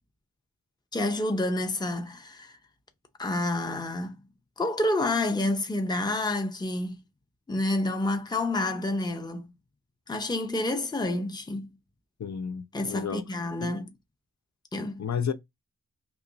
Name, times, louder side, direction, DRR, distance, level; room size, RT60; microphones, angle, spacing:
voice 1, 0.9-2.6 3.2-4.2 4.6-7.0 7.5-9.5 10.1-11.7 12.7-13.9 14.7-15.0, left 2 dB, 15° left, 0.6 m, -29 dB
voice 2, 12.2-13.3 13.6-13.7 15.0-15.3, left 7 dB, 60° left, 0.5 m, -32 dB
2.9 x 2.4 x 3.8 m
wide cardioid pair, 55°, 31 cm